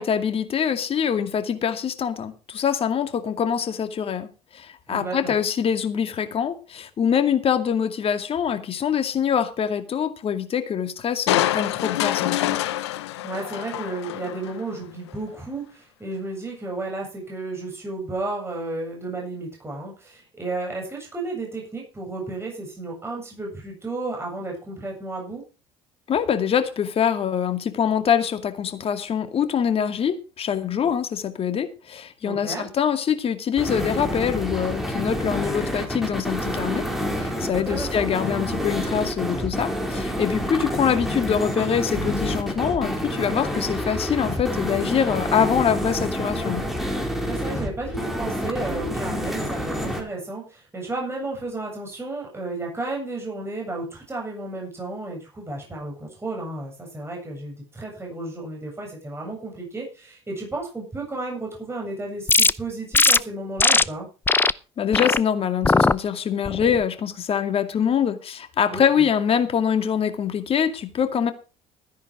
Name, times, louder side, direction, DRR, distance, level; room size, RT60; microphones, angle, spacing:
voice 1, 0.0-4.3 4.5-12.6 26.1-36.9 37.2-46.6 64.8-71.3, left 8 dB, 45° left, 2.3 m, -24 dB
voice 2, 4.9-5.3 13.2-25.4 30.8-30.9 32.2-32.7 37.5-38.1 47.2-64.1 68.7-69.1, right 2 dB, 20° right, 7.9 m, -33 dB
Crushing, 11.3-14.6 15.1-15.2, left 14 dB, 80° left, 0.9 m, -26 dB
sound 1, 33.6-50.0, equal, ahead, 4.7 m, -28 dB
sound 2, 62.3-62.5 62.9-63.2 63.6-63.8 64.3-64.5 64.9-65.2 65.6-65.9 66.4-66.8, left 3 dB, 15° left, 0.6 m, -18 dB
13.5 x 10.0 x 4.7 m
hypercardioid pair, 65°, 14 cm